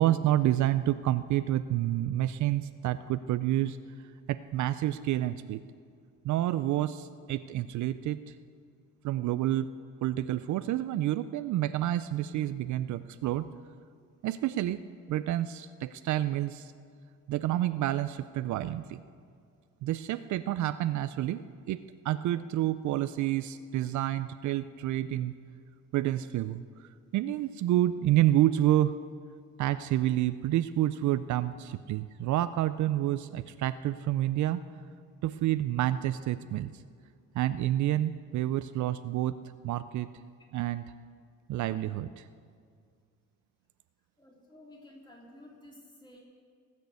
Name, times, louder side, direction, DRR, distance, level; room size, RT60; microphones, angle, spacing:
voice 1, 0.0-3.8 4.3-5.6 6.2-8.2 9.0-9.7 10.0-13.5 14.2-14.8 15.1-16.7 17.3-19.0 19.8-25.3 25.9-26.6 27.1-29.0 29.6-34.6 35.2-36.7 37.3-39.3 39.6-40.1 40.5-40.8 41.5-42.2, right 13 dB, 60° right, 13 dB, 0.4 m, -29 dB
voice 2, 44.2-46.2, left 1 dB, 15° left, -2 dB, 3.0 m, -53 dB
18.5 x 6.5 x 8.2 m, 2.2 s
cardioid pair, 125°, 33 cm